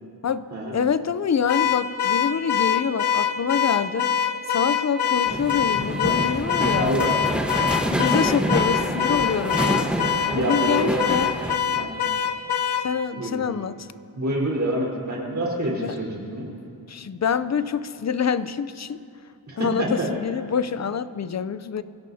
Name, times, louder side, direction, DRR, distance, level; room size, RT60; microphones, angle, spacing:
voice 1, 0.7-4.1 4.5-7.0 7.9-9.9 10.3-11.3 12.8-13.9 15.8-15.9 16.9-19.0 19.6-21.8, left 7 dB, 40° left, 14 dB, 0.5 m, -26 dB
Car / Alarm, 1.5-12.9, left 8 dB, 75° left, 0.8 m, -24 dB
sound 1, 5.2-11.6, equal, ahead, 1.1 m, -27 dB
voice 2, 6.7-7.1 10.3-11.0 11.7-11.9 13.2-13.4 14.1-16.5 19.5-20.1, right 1 dB, 40° right, -4 dB, 4.1 m, -26 dB
25.0 x 16.5 x 2.8 m, 2.7 s
wide cardioid pair, 100°, 41 cm